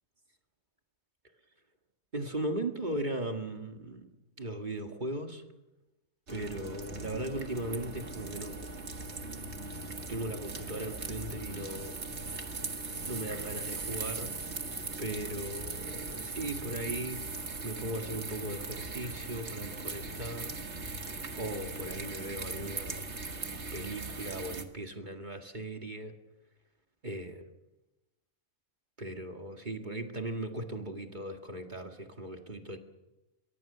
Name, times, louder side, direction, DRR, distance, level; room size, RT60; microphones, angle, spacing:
voice 1, 2.1-4.1 4.4-5.4 6.3-8.6 10.1-11.9 12.3-12.7 13.1-14.3 15.0-17.3 17.6-20.6 21.4-23.0 23.7-26.1 27.0-27.4 29.0-32.8, right 1 dB, 35° right, 4 dB, 2.0 m, -38 dB
sound 1, 6.3-24.6, right 3 dB, 50° right, 1.9 m, -39 dB
23.5 x 22.0 x 6.8 m, 1.0 s
omnidirectional pair, 1.5 m